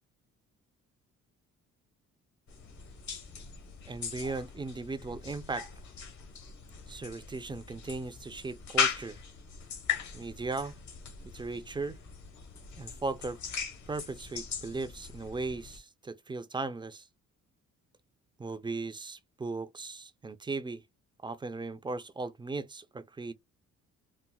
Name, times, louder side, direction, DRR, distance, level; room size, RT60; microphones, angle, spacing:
sound 1, 2.5-15.8, left 7 dB, 70° left, 1.2 m, -39 dB
voice 1, 3.9-5.7 6.9-9.2 10.1-10.8 11.3-12.0 12.8-13.4 13.9-17.1 18.4-20.8 21.2-23.3, right 3 dB, 15° right, 0.3 m, -37 dB
4.1 x 2.1 x 2.3 m
cardioid pair, 90°, 30 cm